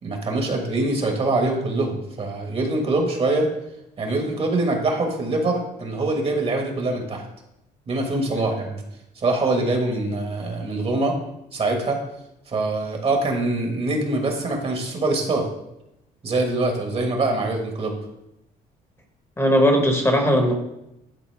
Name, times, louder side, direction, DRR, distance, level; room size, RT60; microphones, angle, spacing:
voice 1, 0.0-3.5 4.0-7.2 7.9-8.8 9.2-11.1 11.5-12.0 12.5-15.5 16.2-18.0, right 2 dB, 35° right, 2 dB, 1.4 m, -24 dB
voice 2, 19.4-20.5, equal, 15° left, 3 dB, 1.2 m, -18 dB
10.5 x 4.1 x 3.4 m, 0.87 s
cardioid pair, 110°, 17 cm